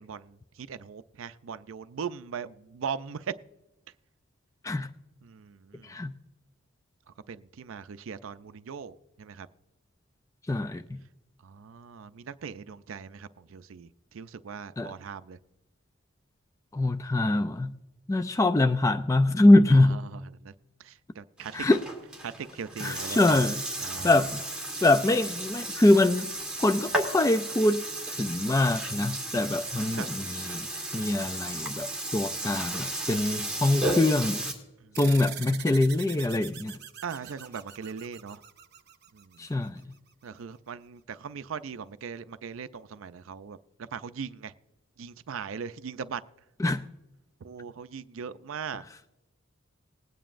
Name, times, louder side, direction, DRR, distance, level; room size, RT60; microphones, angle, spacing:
voice 1, 0.0-3.3 5.2-5.9 7.3-9.5 11.4-13.9 14.1-15.4 19.9-20.5 20.8-21.7 22.2-23.5 23.8-24.2 29.9-30.1 37.0-38.4 39.1-39.4 40.2-44.5 45.0-46.2 47.4-48.8, right 6 dB, 70° right, 13 dB, 0.4 m, -39 dB
voice 2, 10.5-10.8 14.8-14.9 16.7-17.7 18.1-20.0 21.5-21.8 22.8-23.6 24.0-24.3 24.8-26.3 26.6-27.8 28.1-30.7 30.9-31.9 32.1-34.5 35.0-36.7 39.4-39.8 46.6-46.8, left 2 dB, 15° left, 8 dB, 0.3 m, -23 dB
Burping eructation, 21.4-34.5, right 1 dB, 5° right, 2.1 m, -34 dB
sound 1, 34.9-39.8, right 9 dB, 50° right, 0.8 m, -43 dB
20.0 x 9.1 x 2.5 m, 0.99 s
head